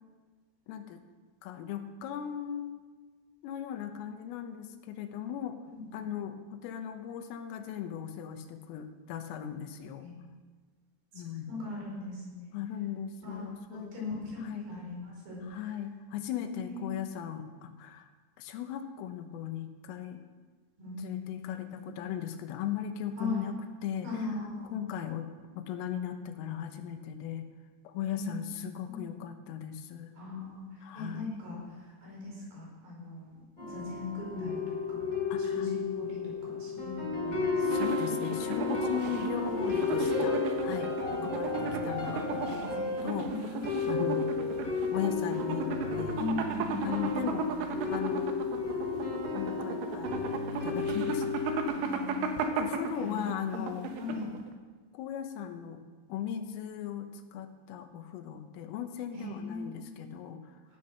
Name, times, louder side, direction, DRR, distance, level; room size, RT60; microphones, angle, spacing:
voice 1, 0.7-1.0 1.4-2.8 3.4-5.6 5.9-10.1 11.1-11.7 12.5-14.7 15.4-18.1 18.4-20.2 21.0-24.1 24.7-25.3 25.6-27.5 27.9-30.1 30.8-31.3 35.3-35.7 37.6-43.6 43.9-44.4 44.9-46.2 46.8-47.5 47.9-48.4 49.3-50.2 50.5-51.7 52.6-53.9 54.9-55.8 56.1-60.8, left 9 dB, 85° left, 7 dB, 3.6 m, -38 dB
voice 2, 11.1-12.6 13.2-15.6 16.4-16.9 20.8-21.9 23.2-23.4 24.0-24.8 28.1-28.5 28.8-29.0 30.1-35.0 35.4-37.9 41.2-41.3 41.6-41.7 42.7-43.6 46.2-46.8 47.5-47.7 51.7-52.4 53.0-53.7 54.0-54.3 59.1-59.9 60.7-60.8, left 3 dB, 45° right, -3 dB, 6.3 m, -40 dB
sound 1, 33.6-51.6, left 4 dB, 25° left, 4.2 m, -33 dB
sound 2, 37.6-54.5, right 3 dB, 75° right, 3.5 m, -35 dB
17.5 x 10.0 x 6.5 m, 1.4 s
omnidirectional pair, 5.8 m